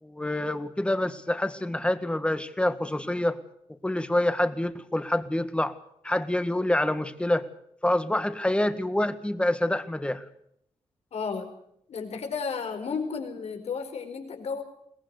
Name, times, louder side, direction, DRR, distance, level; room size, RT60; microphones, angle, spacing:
voice 1, 0.0-3.4 3.8-5.7 6.0-7.4 7.8-10.2, left 1 dB, 10° left, 10 dB, 1.7 m, -26 dB
voice 2, 11.1-11.5 11.9-14.6, left 5 dB, 75° left, 6 dB, 4.6 m, -33 dB
22.5 x 20.0 x 6.6 m, 0.72 s
wide cardioid pair, 110°, 11 cm